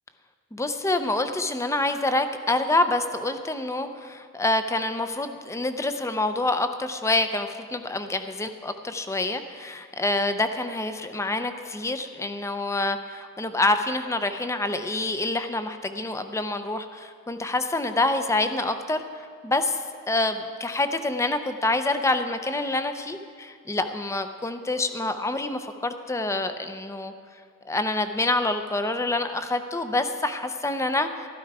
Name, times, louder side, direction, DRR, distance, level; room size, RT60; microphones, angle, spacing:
voice 1, 0.5-19.8 20.1-23.2 23.7-27.1 27.7-31.3, left 2 dB, 15° left, 9 dB, 0.5 m, -27 dB
13.0 x 12.0 x 4.8 m, 2.2 s
head